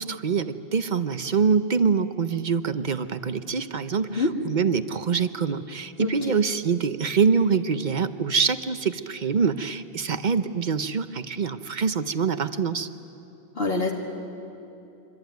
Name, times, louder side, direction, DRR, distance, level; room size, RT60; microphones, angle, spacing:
voice 1, 0.0-12.9, right 5 dB, 50° right, 12 dB, 0.9 m, -25 dB
voice 2, 6.0-6.4 13.6-13.9, left 3 dB, 70° left, 0 dB, 2.3 m, -26 dB
25.0 x 25.0 x 9.3 m, 2.9 s
omnidirectional pair, 1.0 m